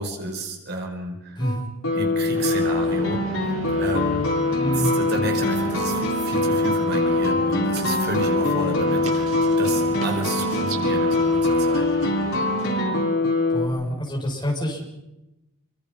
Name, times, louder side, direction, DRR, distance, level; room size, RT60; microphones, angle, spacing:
voice 1, 0.0-1.4 1.9-3.5 3.8-4.2 4.7-11.9, right 2 dB, 50° right, 3 dB, 4.7 m, -31 dB
sound 1, 1.4-13.7, left 2 dB, 70° left, 6.9 m, -23 dB
sound 2, 2.3-12.8, right 2 dB, 75° right, 6.9 m, -37 dB
voice 2, 4.6-5.0 13.5-15.0, equal, 20° left, -1 dB, 7.1 m, -27 dB
28.5 x 25.0 x 5.7 m, 0.93 s
head